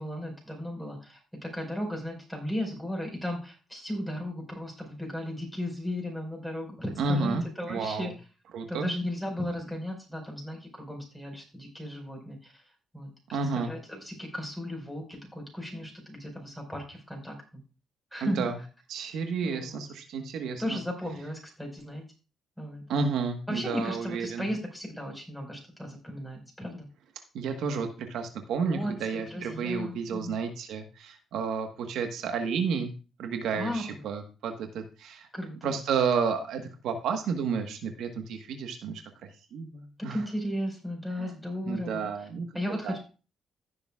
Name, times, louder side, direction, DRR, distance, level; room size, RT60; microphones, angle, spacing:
voice 1, 0.0-8.1 8.7-12.6 12.9-13.1 13.5-17.3 18.1-18.5 19.4-19.8 20.6-22.0 22.6-22.8 23.5-26.9 28.7-30.4 33.6-34.0 35.3-35.7 40.1-42.1 42.5-43.0, equal, 5° left, 1 dB, 4.8 m, -35 dB
voice 2, 7.0-8.1 8.5-8.9 13.3-13.7 18.2-18.6 18.9-20.8 22.9-24.5 27.3-32.9 33.2-35.3 35.6-40.2 41.1-41.4 41.7-42.5 42.8-43.0, right 5 dB, 80° right, 5 dB, 1.3 m, -31 dB
16.0 x 7.0 x 2.4 m, 0.33 s
cardioid pair, 90°, 0 cm